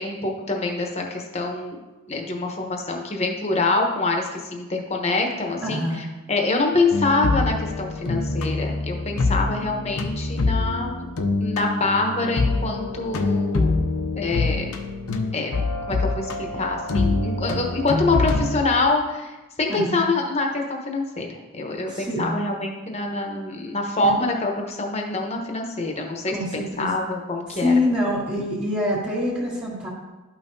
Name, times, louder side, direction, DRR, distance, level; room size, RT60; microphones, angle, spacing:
voice 1, 0.0-1.8 2.1-11.1 11.4-13.8 14.1-14.7 15.3-27.7, left 3 dB, 30° left, 2 dB, 1.0 m, -25 dB
voice 2, 5.6-6.0 19.7-20.0 21.9-22.4 26.3-26.9 27.5-29.9, left 1 dB, 25° right, -9 dB, 1.5 m, -25 dB
sound 1, 6.9-18.6, left 3 dB, 80° left, 0.7 m, -25 dB
12.0 x 5.5 x 2.7 m, 1.1 s
head